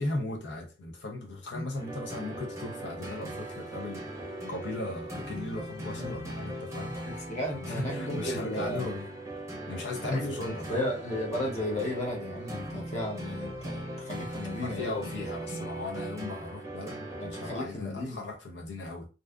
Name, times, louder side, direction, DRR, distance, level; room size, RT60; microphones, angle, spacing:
voice 1, 0.0-4.1 4.5-7.0 7.5-9.1 9.7-10.9 14.5-19.1, left 2 dB, 75° left, 0.7 m, -37 dB
sound 1, 1.7-17.6, right 1 dB, 15° right, 0.7 m, -39 dB
voice 2, 7.1-8.9 10.0-10.3 10.7-15.1 15.5-15.7 17.2-18.2, left 1 dB, 40° left, 0.9 m, -34 dB
2.6 x 2.3 x 2.3 m
head